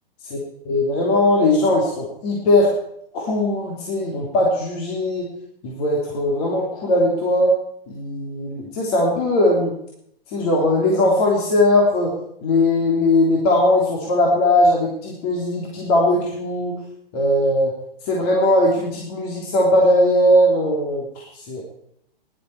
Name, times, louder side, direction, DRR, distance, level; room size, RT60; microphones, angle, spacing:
voice 1, 0.7-2.7 3.1-5.3 5.6-7.5 7.9-9.7 10.3-12.1 12.4-16.8 17.1-17.7 18.0-21.6, left 1 dB, 40° left, -3 dB, 3.2 m, -19 dB
15.0 x 11.5 x 4.8 m, 0.74 s
hypercardioid pair, 130°, 29 cm